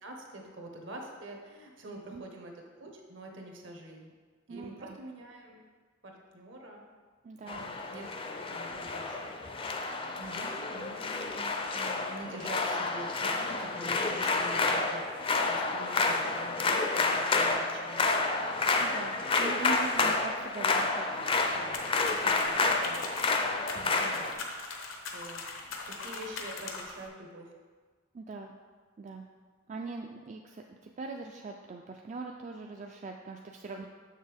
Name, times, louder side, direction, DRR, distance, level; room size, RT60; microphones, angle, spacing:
voice 1, 0.0-4.1 4.5-5.6 6.0-6.9 7.4-8.0 8.5-15.1 15.3-18.3 20.0-20.1 22.6-23.0 24.0-24.4 24.6-25.4 25.7-27.5 33.7-33.8, right 1 dB, 65° right, 1 dB, 1.1 m, -46 dB
voice 2, 4.5-5.0 7.2-7.7 18.8-21.9 22.2-22.7 23.7-24.0 28.1-28.5 29.0-29.3 29.7-33.9, right 3 dB, 35° right, 2 dB, 0.3 m, -42 dB
sound 1, 7.5-24.3, left 3 dB, 25° left, 0.4 m, -30 dB
sound 2, 21.7-27.1, left 4 dB, 85° left, 0.9 m, -41 dB
6.9 x 6.5 x 3.4 m, 1.5 s
head